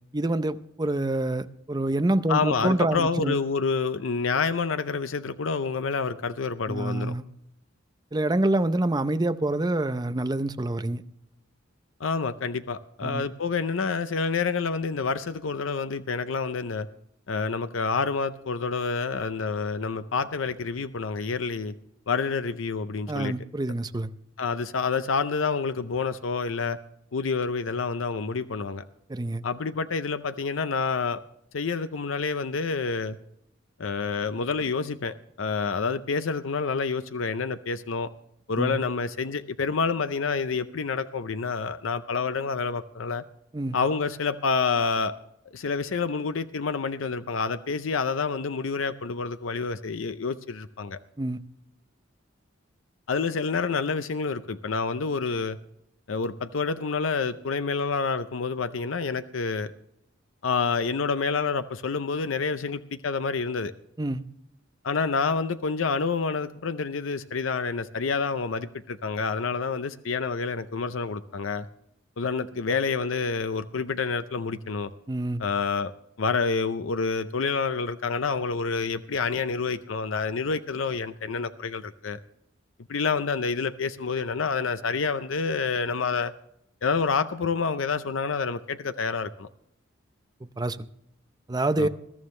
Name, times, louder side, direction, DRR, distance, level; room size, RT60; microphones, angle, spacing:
voice 1, 0.1-3.4 6.7-7.3 8.1-11.0 13.0-13.2 23.1-24.1 29.1-29.4 38.6-38.8 43.5-43.8 51.2-51.4 64.0-64.2 75.1-75.4 90.4-90.9 91.5-91.9, right 2 dB, 20° right, 11 dB, 0.6 m, -26 dB
voice 2, 2.3-7.1 12.0-16.9 17.3-21.7 22.1-23.3 24.4-26.8 27.1-28.8 29.4-31.2 31.5-33.2 33.8-38.1 38.5-43.2 43.7-45.1 45.5-51.0 53.1-55.6 56.1-59.7 60.4-63.7 64.8-71.7 72.2-74.9 75.4-75.9 76.2-82.2 82.9-86.3 86.8-89.5 91.8-91.9, left 4 dB, 80° left, 11 dB, 0.6 m, -28 dB
21.0 x 13.0 x 3.2 m, 0.74 s
head